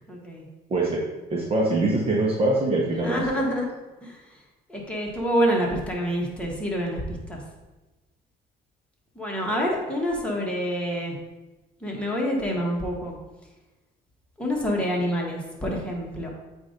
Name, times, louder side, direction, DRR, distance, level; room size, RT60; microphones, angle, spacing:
voice 1, 0.1-0.5 3.0-3.7 4.0-4.2 4.7-7.4 9.1-11.1 11.8-13.1 14.4-16.3, equal, 5° left, -2 dB, 1.6 m, -27 dB
voice 2, 1.3-3.5, right 2 dB, 35° right, -3 dB, 1.0 m, -23 dB
8.0 x 2.7 x 5.1 m, 1.1 s
cardioid pair, 110°, 17 cm